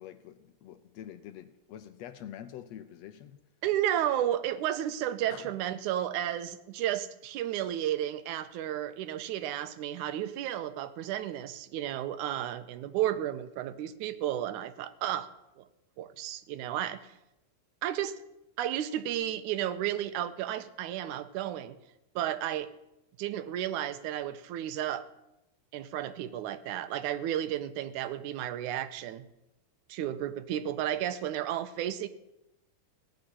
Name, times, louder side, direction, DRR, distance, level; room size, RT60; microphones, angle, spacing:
voice 1, 0.0-3.4 5.3-5.5, left 10 dB, 75° left, 10 dB, 1.7 m, -46 dB
voice 2, 3.6-15.3 15.6-15.7 16.0-17.0 17.8-18.2 18.6-21.8 22.2-22.7 23.2-25.1 25.7-29.3 29.9-32.1, right 11 dB, 85° right, 12 dB, 2.2 m, -32 dB
17.0 x 6.6 x 9.8 m, 0.90 s
omnidirectional pair, 3.4 m